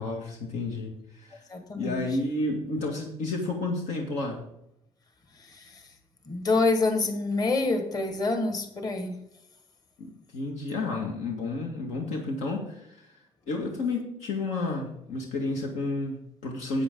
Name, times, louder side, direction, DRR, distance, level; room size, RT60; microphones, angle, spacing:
voice 1, 0.0-1.4 1.8-4.5 10.0-13.2 13.5-16.8, left 2 dB, 85° left, 1 dB, 1.9 m, -31 dB
voice 2, 1.5-1.9 5.5-5.7 6.3-9.1, left 3 dB, 35° left, 6 dB, 1.6 m, -26 dB
11.0 x 8.5 x 3.8 m, 0.79 s
cardioid pair, 135°, 12 cm